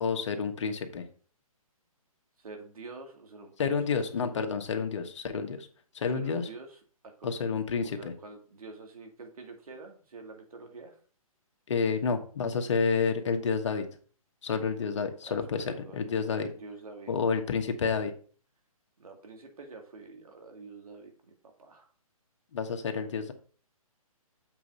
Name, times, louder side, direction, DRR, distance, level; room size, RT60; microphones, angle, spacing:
voice 1, 0.0-1.0 3.6-5.7 5.9-6.5 7.2-8.1 11.7-13.9 14.4-16.5 17.1-18.1 22.5-23.3, left 5 dB, 50° left, 6 dB, 1.2 m, -29 dB
voice 2, 2.4-3.8 6.1-6.8 7.0-7.3 7.8-11.0 15.3-17.6 19.0-21.3 21.6-21.9, right 3 dB, 70° right, 3 dB, 2.2 m, -47 dB
7.5 x 4.1 x 5.2 m, 0.42 s
hypercardioid pair, 155°, 19 cm